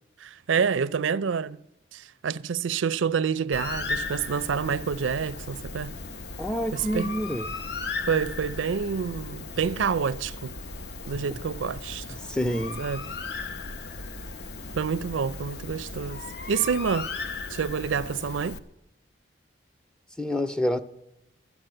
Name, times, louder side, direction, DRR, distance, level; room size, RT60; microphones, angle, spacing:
voice 1, 0.2-1.6 1.9-5.9 6.7-7.1 8.1-10.5 11.1-12.1 12.8-13.1 14.8-17.1 17.5-18.6, right 6 dB, 90° right, 0.5 m, -28 dB
Bird, 3.5-18.6, left 3 dB, 55° left, 0.8 m, -36 dB
voice 2, 6.4-7.5 12.2-12.8 20.2-20.8, equal, 5° left, 0.4 m, -28 dB
12.5 x 10.5 x 7.7 m
head